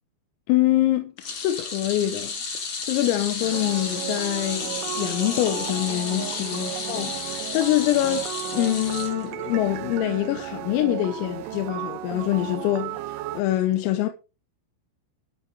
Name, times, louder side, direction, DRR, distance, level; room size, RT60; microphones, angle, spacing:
voice 1, 0.5-14.1, left 14 dB, 90° left, 3.6 m, -25 dB
sound 1, 1.2-9.7 10.0-10.3 11.4-11.5, left 4 dB, 50° left, 1.9 m, -32 dB
sound 2, 3.4-13.4, right 13 dB, 75° right, 3.1 m, -34 dB
13.0 x 6.1 x 5.1 m
omnidirectional pair, 5.9 m